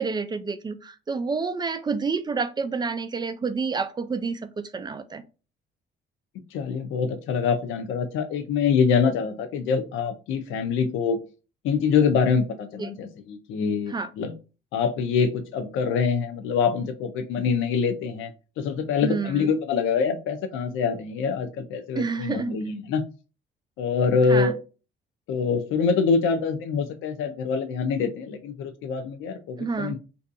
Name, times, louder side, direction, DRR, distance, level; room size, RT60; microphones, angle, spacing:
voice 1, 0.0-5.2 12.8-12.9 13.9-14.1 19.0-19.5 22.0-22.5 24.3-24.5 29.6-30.0, right 4 dB, 20° right, 0.3 m, -29 dB
voice 2, 6.5-11.2 11.6-14.3 14.7-18.3 18.6-23.0 23.8-24.5 25.3-30.0, left 5 dB, 90° left, 0.4 m, -25 dB
2.6 x 2.3 x 2.5 m
cardioid pair, 90°, 20 cm